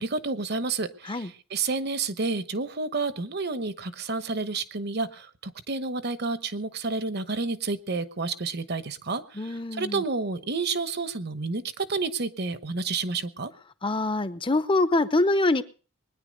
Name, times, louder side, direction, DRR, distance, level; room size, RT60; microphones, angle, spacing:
voice 1, 0.0-13.5, right 3 dB, 50° right, 13 dB, 1.1 m, -30 dB
voice 2, 9.3-10.0 13.8-15.6, left 2 dB, 25° left, 13 dB, 0.7 m, -24 dB
21.0 x 10.0 x 5.2 m, 0.39 s
head